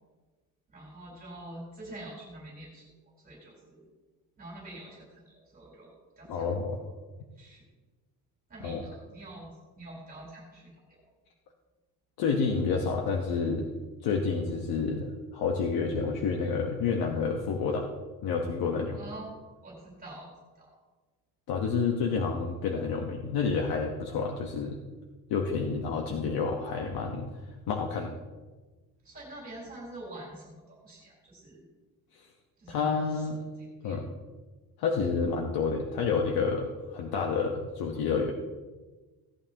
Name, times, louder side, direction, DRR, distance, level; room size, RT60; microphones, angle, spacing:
voice 1, 0.7-2.9 3.2-3.8 4.4-6.5 7.4-7.7 8.5-11.0 18.9-19.3 19.6-20.3 20.6-20.7 29.0-31.7 32.6-33.3 33.6-34.0, right 1 dB, 25° right, -4 dB, 4.1 m, -46 dB
voice 2, 6.3-6.8 8.6-8.8 12.2-13.7 14.0-17.9 18.2-19.0 21.5-24.8 25.3-27.3 27.7-28.1 32.2-32.3 32.7-33.4 33.8-34.1 34.8-38.3, left 5 dB, 90° left, 1 dB, 1.3 m, -29 dB
17.0 x 11.0 x 3.0 m, 1.3 s
cardioid pair, 175°, 35 cm